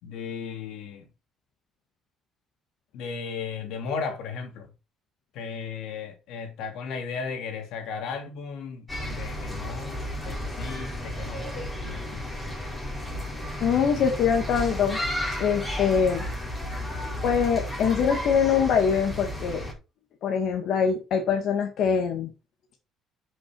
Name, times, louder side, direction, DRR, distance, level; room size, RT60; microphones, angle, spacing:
voice 1, 0.0-1.1 2.9-4.7 5.3-11.5 11.8-12.2, left 5 dB, 80° left, 2.8 m, -35 dB
sound 1, 8.9-19.7, left 1 dB, 15° left, 5.4 m, -33 dB
voice 2, 13.6-15.0 15.4-16.2 17.2-19.6 20.2-22.3, left 7 dB, 65° left, 1.9 m, -23 dB
10.0 x 6.4 x 4.6 m
cardioid pair, 125°, 0 cm